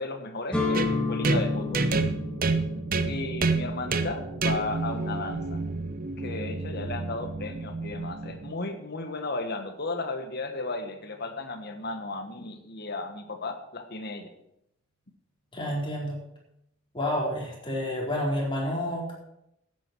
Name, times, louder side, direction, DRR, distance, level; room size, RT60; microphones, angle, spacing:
voice 1, 0.0-1.9 3.1-5.6 6.2-14.3, left 2 dB, 50° left, 6 dB, 1.5 m, -35 dB
sound 1, 0.5-8.3, left 3 dB, 5° left, 2.3 m, -35 dB
sound 2, 0.7-8.5, right 3 dB, 45° right, 0.8 m, -29 dB
voice 2, 15.5-16.2 16.9-19.1, left 1 dB, 25° left, -3 dB, 4.3 m, -29 dB
15.0 x 9.0 x 4.7 m, 0.79 s
head